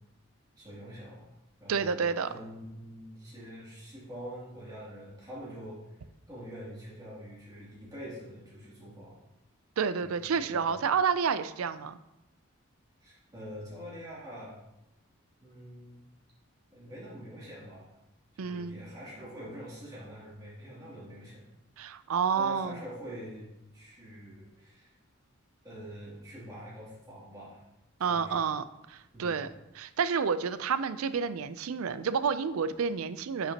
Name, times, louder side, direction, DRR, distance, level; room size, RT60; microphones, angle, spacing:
voice 1, 0.6-1.3 1.6-2.0 2.3-9.1 10.0-10.8 13.0-14.6 15.4-16.0 16.7-17.9 18.3-21.4 22.4-23.5 23.7-24.9 25.6-27.6 28.1-28.5 29.1-29.3, equal, 20° right, -7 dB, 2.6 m, -45 dB
voice 2, 1.7-2.3 9.8-12.0 18.4-18.8 21.8-22.8 28.0-29.5 29.7-33.5, right 6 dB, 80° right, 13 dB, 0.4 m, -29 dB
9.4 x 5.7 x 2.9 m, 0.93 s
head